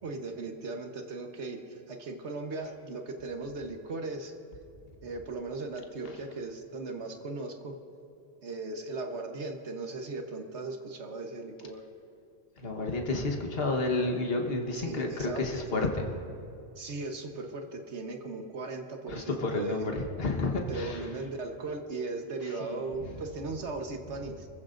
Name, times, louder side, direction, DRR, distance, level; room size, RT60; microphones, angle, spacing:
voice 1, 0.0-4.3 5.0-7.7 8.4-11.8 14.7-15.6 16.8-19.9 20.6-24.5, right 3 dB, 85° right, 4 dB, 1.5 m, -38 dB
voice 2, 12.6-16.1 19.1-21.1 22.4-22.8, left 2 dB, 60° left, 2 dB, 1.5 m, -31 dB
28.0 x 15.0 x 2.6 m, 2.5 s
omnidirectional pair, 1.1 m